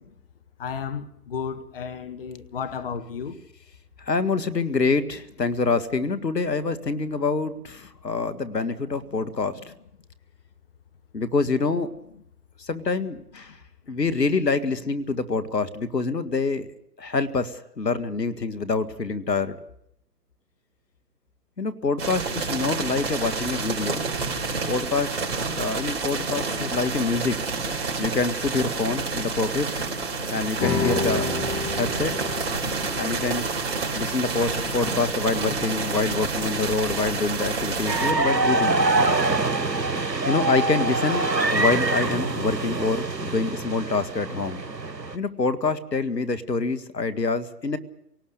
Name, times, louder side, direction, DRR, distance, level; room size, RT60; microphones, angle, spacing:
voice 1, 0.6-3.4, left 6 dB, 35° left, 11 dB, 1.1 m, -33 dB
voice 2, 4.1-9.7 11.1-11.9 12.6-13.5 13.9-16.7 17.0-19.6 21.6-24.0 24.7-27.4 28.0-29.7 30.3-31.3 31.7-32.2 33.0-33.5 33.9-38.8 40.3-41.3 41.5-44.6 45.1-47.8, left 4 dB, 75° left, 12 dB, 1.9 m, -26 dB
sound 1, 22.0-38.1, right 4 dB, 35° right, 5.0 m, -29 dB
sound 2, 30.6-37.3, left 4 dB, 15° left, 3.4 m, -33 dB
sound 3, 37.9-45.2, right 2 dB, 90° right, 1.6 m, -24 dB
29.0 x 18.5 x 6.7 m, 0.74 s
figure-of-eight pair, 145°, 49 cm